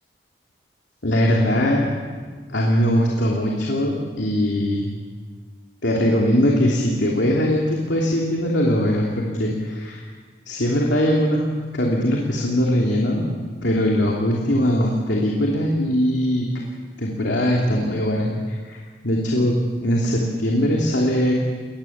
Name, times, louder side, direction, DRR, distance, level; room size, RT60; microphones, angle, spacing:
voice 1, 1.0-1.9 2.5-4.9 5.8-10.0 10.5-11.4 11.7-13.3 13.6-16.5 17.0-21.3, equal, 80° left, -2 dB, 2.9 m, -21 dB
21.5 x 19.5 x 7.3 m, 1.5 s
head